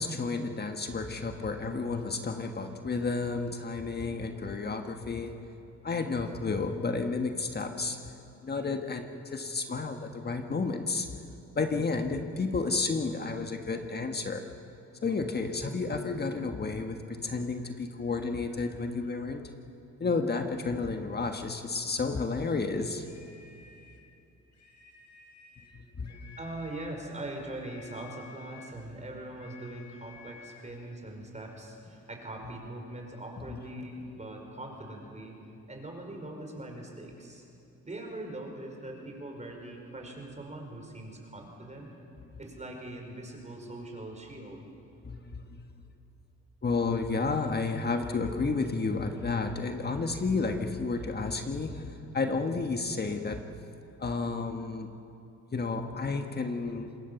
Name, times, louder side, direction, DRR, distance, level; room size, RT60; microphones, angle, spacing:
voice 1, 0.0-5.5 5.8-8.1 8.4-11.1 11.5-14.5 15.0-19.4 20.0-23.0 25.7-26.4 33.5-33.6 45.0-45.7 46.6-53.5 54.0-54.9 55.5-57.0, left 4 dB, 35° left, 5 dB, 1.5 m, -31 dB
sound 1, 23.0-24.1 24.5-25.8 26.0-27.0 27.6-28.8 29.4-30.7, left 6 dB, 70° left, 3.5 m, -54 dB
voice 2, 26.4-35.4 35.7-37.5 37.8-42.0 42.4-44.7, right 1 dB, 25° right, 2 dB, 5.2 m, -41 dB
26.5 x 20.0 x 7.1 m, 2.7 s
cardioid pair, 90°, 30 cm